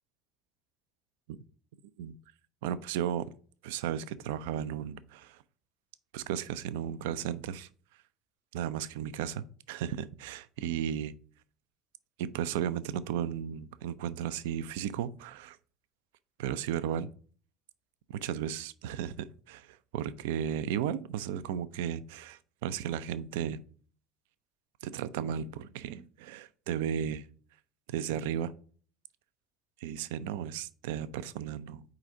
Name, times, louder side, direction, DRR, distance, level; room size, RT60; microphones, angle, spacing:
voice 1, 2.6-3.3 3.6-5.4 6.1-7.7 8.5-11.1 12.2-15.6 16.4-17.1 18.1-23.6 24.8-27.3 27.9-28.5 29.8-31.8, right 9 dB, 65° right, 0.3 m, -34 dB
4.8 x 3.8 x 5.1 m
figure-of-eight pair, 65°, 0 cm